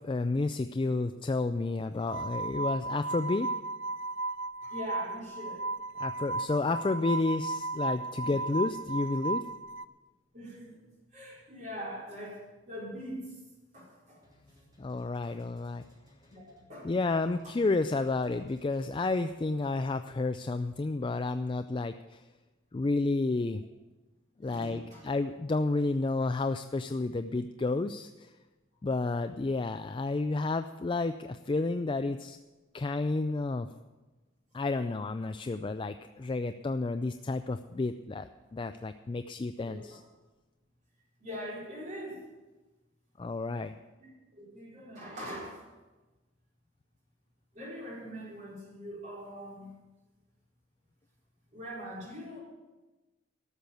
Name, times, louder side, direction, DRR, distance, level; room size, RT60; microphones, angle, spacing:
voice 1, 0.0-3.5 6.0-9.5 14.8-15.8 16.8-22.3 22.7-23.6 24.4-28.3 28.8-32.4 32.7-33.7 34.5-40.0 43.2-43.7, left 3 dB, 25° left, 9 dB, 0.3 m, -31 dB
sound 1, 2.0-9.9, right 2 dB, 65° right, 0.5 m, -35 dB
voice 2, 4.6-5.7 8.2-8.3 10.3-10.8 11.1-13.4 13.7-14.2 16.3-16.9 17.4-17.6 24.4-25.0 39.6-40.0 41.2-42.2 44.0-45.7 47.5-49.7 51.5-52.4, equal, 40° right, -4 dB, 4.5 m, -42 dB
sound 2, 14.2-19.7, equal, 20° right, 3.7 m, -62 dB
12.5 x 7.0 x 9.0 m, 1.2 s
head